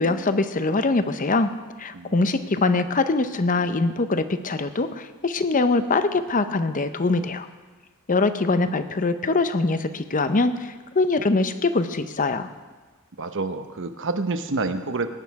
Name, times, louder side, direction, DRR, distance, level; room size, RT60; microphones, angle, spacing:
voice 1, 0.0-1.5 1.8-7.5 8.1-12.5, left 3 dB, 35° left, 10 dB, 0.7 m, -23 dB
voice 2, 1.9-2.3 13.2-15.1, right 3 dB, 60° right, 8 dB, 0.9 m, -28 dB
18.5 x 9.4 x 4.7 m, 1.3 s
head